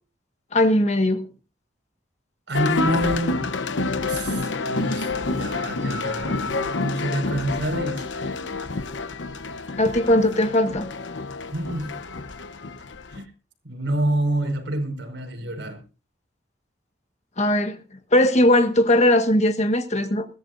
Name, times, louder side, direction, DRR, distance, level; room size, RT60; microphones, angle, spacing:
voice 1, 0.5-1.3 9.8-10.9 17.4-17.8 18.1-20.3, left 1 dB, 40° left, 1.5 m, -19 dB
sound 1, 2.5-13.2, left 3 dB, 85° left, 0.9 m, -28 dB
voice 2, 2.5-3.4 4.1-8.1 11.5-12.0 13.1-13.3 13.6-15.8, right 1 dB, 80° right, 5.3 m, -27 dB
21.0 x 15.5 x 2.6 m
head